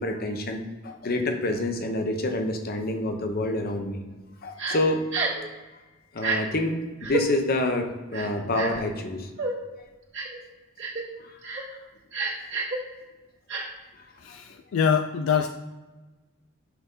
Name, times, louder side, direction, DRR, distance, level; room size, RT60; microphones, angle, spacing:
voice 1, 0.0-4.0 4.4-5.0 6.1-9.3 11.4-11.5 14.3-14.4, left 1 dB, 50° left, 5 dB, 0.8 m, -27 dB
Crying sobbing, 4.6-4.8 5.1-5.4 6.2-6.4 7.0-7.2 8.1-8.8 9.4-9.5 10.1-10.4 10.8-11.0 11.4-11.6 12.1-12.8 13.5-13.6, right 4 dB, 60° right, 1.7 m, -29 dB
voice 2, 14.2-15.5, left 7 dB, 70° left, 7 dB, 0.4 m, -24 dB
5.8 x 5.4 x 3.8 m, 1.2 s
head